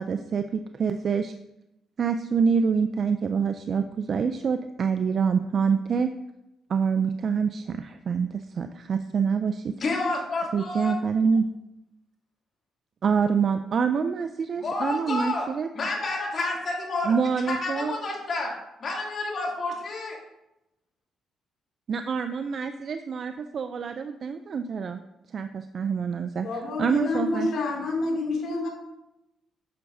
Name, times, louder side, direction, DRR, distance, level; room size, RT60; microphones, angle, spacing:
voice 1, 0.0-1.3 2.0-6.1 6.7-9.7 10.5-11.5 13.0-15.7 17.1-18.0 21.9-25.0 25.3-26.5 26.8-27.5, right 6 dB, 50° right, 8 dB, 0.4 m, -26 dB
voice 2, 9.8-10.9 14.6-15.5 15.7-17.1 17.4-18.5 18.8-20.2, left 2 dB, 45° left, -3 dB, 2.6 m, -29 dB
voice 3, 26.4-28.7, left 2 dB, 75° left, -1 dB, 2.5 m, -28 dB
9.4 x 6.9 x 2.7 m, 0.89 s
cardioid pair, 90°, 0 cm